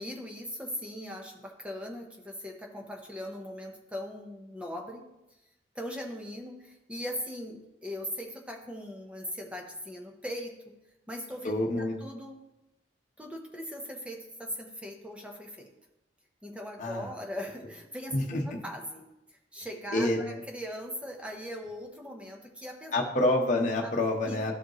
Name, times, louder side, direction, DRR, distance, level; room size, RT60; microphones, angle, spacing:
voice 1, 0.0-5.1 5.7-10.5 11.1-12.4 13.2-15.7 16.4-22.9 23.8-23.9 24.2-24.5, equal, 5° right, 2 dB, 0.8 m, -40 dB
voice 2, 11.4-12.0 16.8-17.1 18.1-18.6 19.9-20.4 22.9-24.5, left 1 dB, 45° left, -1 dB, 1.0 m, -27 dB
12.5 x 5.0 x 3.0 m, 0.95 s
head